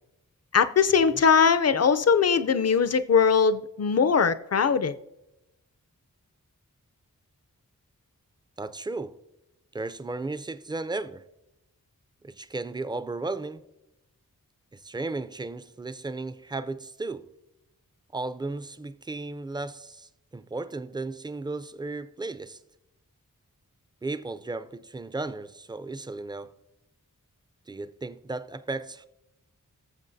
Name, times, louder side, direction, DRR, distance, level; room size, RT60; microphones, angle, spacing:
voice 1, 0.5-4.9, left 6 dB, 50° left, 0.5 m, -21 dB
voice 2, 8.6-9.2 9.7-11.3 12.2-13.7 14.7-17.3 18.1-22.6 24.0-26.5 27.7-29.1, right 3 dB, 15° right, 0.4 m, -35 dB
19.5 x 7.1 x 2.7 m
wide cardioid pair, 65°, 33 cm